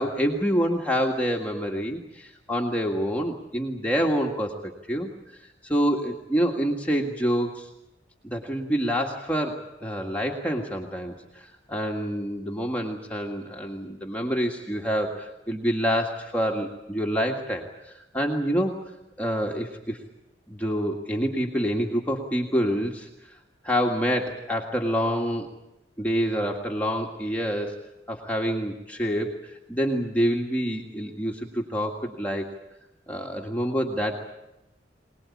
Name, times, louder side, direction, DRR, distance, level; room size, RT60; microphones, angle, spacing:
voice 1, 0.0-7.7 8.2-18.8 19.2-20.0 20.5-23.4 23.6-25.5 26.0-27.8 28.1-32.5 33.1-34.1, equal, 10° left, -1 dB, 1.8 m, -27 dB
25.0 x 19.5 x 8.5 m, 0.94 s
head